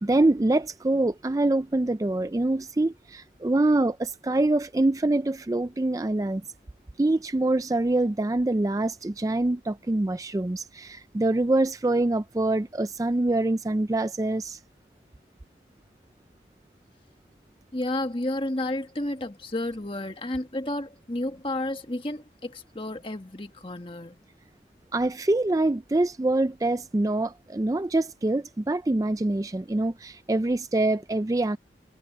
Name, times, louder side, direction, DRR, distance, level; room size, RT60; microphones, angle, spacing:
voice 1, 0.0-6.4 7.0-14.6 24.9-31.6, right 2 dB, 20° right, 0.4 m, -25 dB
voice 2, 17.7-24.2, left 1 dB, 30° left, 1.5 m, -31 dB
head